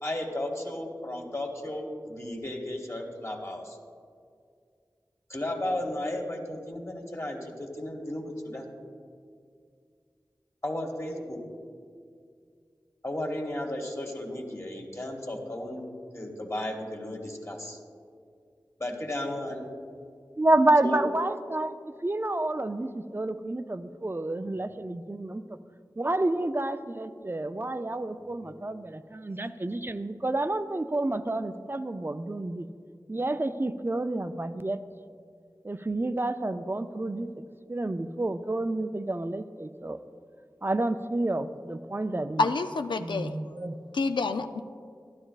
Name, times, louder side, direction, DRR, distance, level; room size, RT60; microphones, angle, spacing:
voice 1, 0.0-3.8 5.3-8.7 10.6-11.4 13.0-15.9 16.1-17.8 18.8-19.7 20.8-21.1 28.3-28.6, left 1 dB, 35° left, 0 dB, 1.4 m, -34 dB
voice 2, 20.4-25.4 26.0-32.7 33.1-34.8 35.6-37.3 37.7-40.0 40.6-42.4 43.0-43.8, right 2 dB, 30° right, 10 dB, 0.4 m, -29 dB
voice 3, 42.4-43.3 43.9-44.6, left 3 dB, 85° left, 7 dB, 0.3 m, -27 dB
12.0 x 11.0 x 2.4 m, 2.2 s
wide cardioid pair, 50°, 8 cm